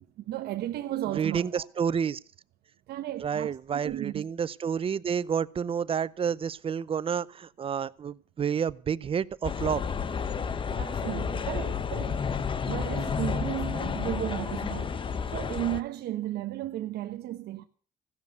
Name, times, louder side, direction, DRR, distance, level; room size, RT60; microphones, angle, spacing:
voice 1, 0.0-1.6 2.9-4.2 10.7-12.3 12.7-15.0 15.3-17.6, right 13 dB, 75° right, 1.0 m, -34 dB
voice 2, 1.1-2.2 3.2-9.8, right 7 dB, 35° right, 0.6 m, -29 dB
sound 1, 9.4-15.8, left 6 dB, 30° left, 0.8 m, -31 dB
16.0 x 7.1 x 9.5 m
cardioid pair, 110°, 17 cm